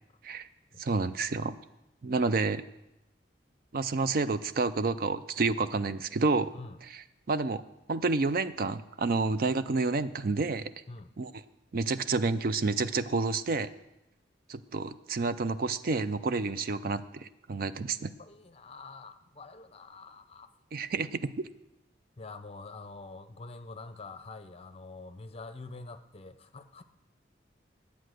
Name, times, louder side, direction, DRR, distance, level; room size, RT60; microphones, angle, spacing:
voice 1, 0.8-1.6 2.0-2.6 3.7-6.5 7.3-7.6 7.9-10.7 11.2-11.3 11.7-13.7 14.5-18.1 20.7-21.2, right 3 dB, 50° right, 13 dB, 0.4 m, -29 dB
voice 2, 18.2-20.5 22.2-26.8, left 3 dB, 35° left, 10 dB, 0.6 m, -46 dB
11.0 x 8.3 x 6.4 m, 0.92 s
head